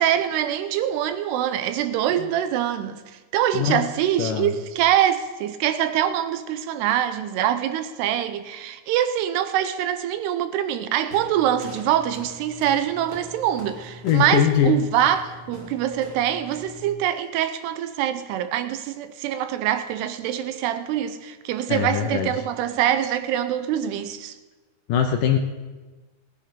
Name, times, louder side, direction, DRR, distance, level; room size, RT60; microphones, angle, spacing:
voice 1, 0.0-24.3, right 11 dB, 90° right, 2.8 m, -24 dB
voice 2, 3.5-3.9 4.2-4.5 14.0-14.8 21.7-22.3 24.9-25.4, left 8 dB, 75° left, 2.0 m, -21 dB
sound 1, 11.1-16.9, right 1 dB, 35° right, 1.0 m, -42 dB
18.5 x 9.7 x 5.2 m
omnidirectional pair, 4.6 m